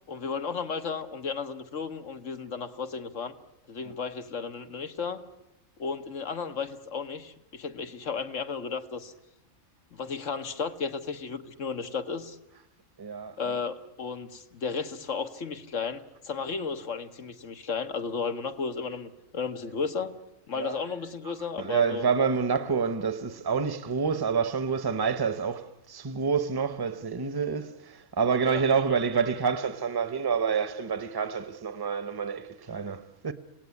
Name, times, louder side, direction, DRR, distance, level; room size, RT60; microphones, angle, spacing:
voice 1, 0.1-3.3 3.7-5.2 5.8-9.1 9.9-12.4 13.4-20.1 20.5-22.1 28.4-28.6 28.9-29.0, left 5 dB, 80° left, 1.6 m, -34 dB
voice 2, 13.0-13.6 20.5-20.8 21.2-33.3, right 5 dB, 20° right, 0.8 m, -28 dB
27.0 x 18.0 x 9.7 m
omnidirectional pair, 1.3 m